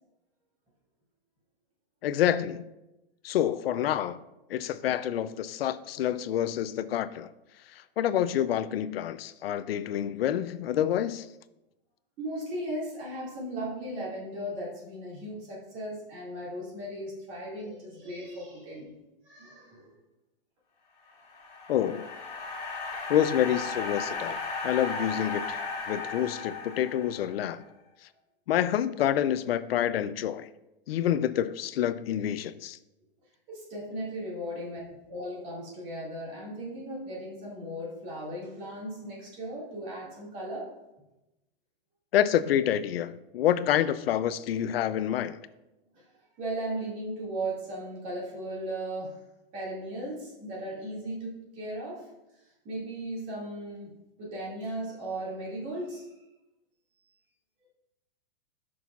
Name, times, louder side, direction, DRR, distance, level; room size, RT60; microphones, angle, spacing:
voice 1, 2.0-2.6 3.2-4.2 4.5-7.3 8.0-11.3 21.7-22.1 23.1-27.6 28.5-30.5 30.9-32.8 42.1-45.4, left 11 dB, 90° left, 0.5 m, -27 dB
voice 2, 12.2-18.9 19.2-19.9 33.5-34.8 35.1-40.7 45.9-46.0 46.4-49.2 49.5-52.1 52.6-56.1, right 1 dB, 25° right, 2.2 m, -37 dB
sound 1, 21.1-27.5, left 4 dB, 50° left, 2.0 m, -36 dB
11.0 x 6.3 x 2.4 m
supercardioid pair, 175°, 29 cm